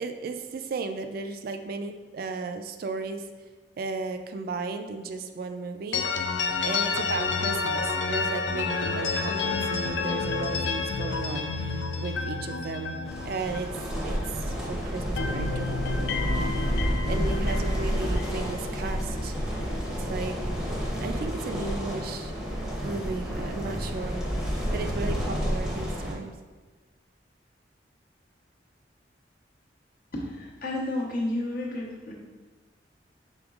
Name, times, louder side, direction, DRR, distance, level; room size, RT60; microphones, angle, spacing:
voice 1, 0.0-3.3 3.8-6.4 6.6-13.7 14.0-16.5 17.1-19.3 19.9-20.7 21.0-22.3 22.8-24.2 24.7-26.4, right 4 dB, 55° right, 7 dB, 0.3 m, -35 dB
sound 1, 5.9-14.7 14.9-19.1, left 4 dB, 80° left, 0.4 m, -30 dB
sound 2, 13.1-26.1, equal, 5° right, 0.7 m, -30 dB
voice 2, 30.1-32.1, left 1 dB, 55° left, -3 dB, 1.0 m, -31 dB
5.2 x 3.9 x 2.4 m, 1.3 s
head